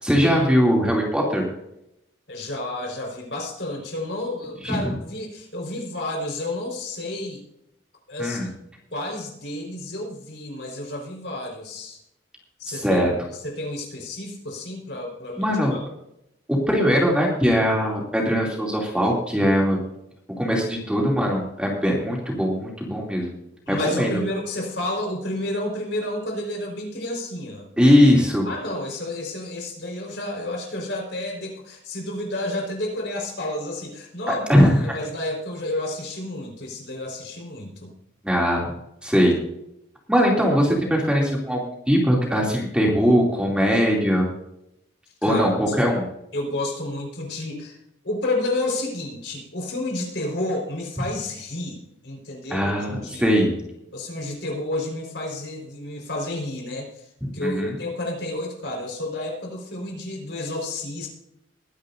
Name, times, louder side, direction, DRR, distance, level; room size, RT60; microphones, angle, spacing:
voice 1, 0.0-1.4 4.6-4.9 8.2-8.5 12.7-13.1 15.4-15.7 16.5-19.8 20.3-23.3 23.7-24.2 27.8-28.5 34.3-34.9 38.2-38.7 39.0-39.4 40.1-44.2 45.2-46.1 52.5-53.5 57.2-57.8, equal, 5° right, -2 dB, 2.7 m, -20 dB
voice 2, 2.3-7.4 8.1-8.5 8.9-12.0 12.6-15.8 23.7-27.7 28.4-37.9 45.2-45.4 45.8-45.9 46.3-47.8 48.0-53.4 53.9-56.9 57.3-61.1, left 1 dB, 65° left, 1 dB, 4.7 m, -30 dB
21.5 x 10.5 x 2.7 m, 0.82 s
head